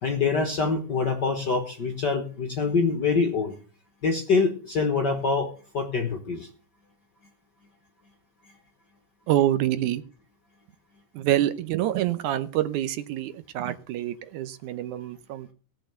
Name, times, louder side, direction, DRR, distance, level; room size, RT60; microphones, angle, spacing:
voice 1, 0.0-3.5 4.0-6.5, left 4 dB, 50° left, 5 dB, 1.3 m, -25 dB
voice 2, 9.3-10.0 11.2-15.5, right 13 dB, 75° right, 12 dB, 2.2 m, -26 dB
17.5 x 6.5 x 6.8 m, 0.39 s
omnidirectional pair, 3.6 m